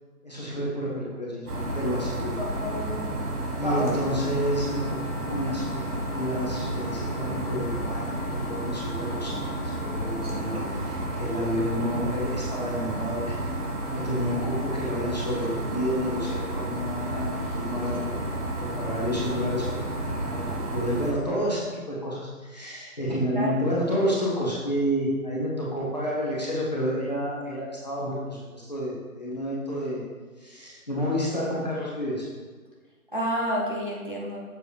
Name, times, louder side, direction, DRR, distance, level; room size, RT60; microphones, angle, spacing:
voice 1, 0.2-2.4 3.5-4.8 5.2-13.4 13.9-18.1 18.5-30.0 30.4-32.3, equal, 30° left, -6 dB, 0.9 m, -30 dB
sound 1, 1.5-21.1, right 1 dB, 85° right, 1.5 m, -31 dB
voice 2, 2.4-3.1 3.6-3.9 23.4-23.5 33.1-34.4, equal, 35° right, -4 dB, 0.7 m, -29 dB
6.7 x 4.2 x 3.3 m, 1.5 s
figure-of-eight pair, 165°, 45 cm